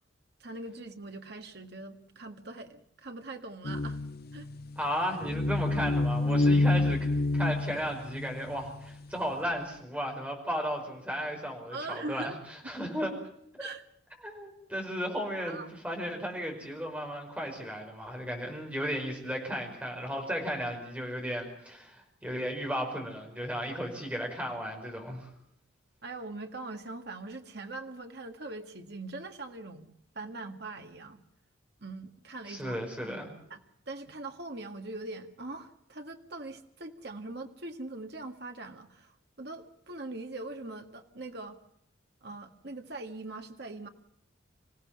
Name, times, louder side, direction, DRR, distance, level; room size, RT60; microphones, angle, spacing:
voice 1, 0.4-4.0 4.3-4.5 11.7-12.4 13.6-13.8 15.1-15.2 15.4-15.7 26.0-31.2 31.8-33.6 33.9-41.6 42.2-43.9, right 2 dB, 55° right, 5 dB, 1.8 m, -42 dB
sound 1, 3.6-8.9, left 2 dB, 50° left, 0.8 m, -28 dB
voice 2, 4.8-13.1 13.6-13.7 14.2-25.3 32.5-33.3, equal, 5° right, 2 dB, 5.2 m, -35 dB
26.5 x 16.5 x 7.5 m, 0.72 s
head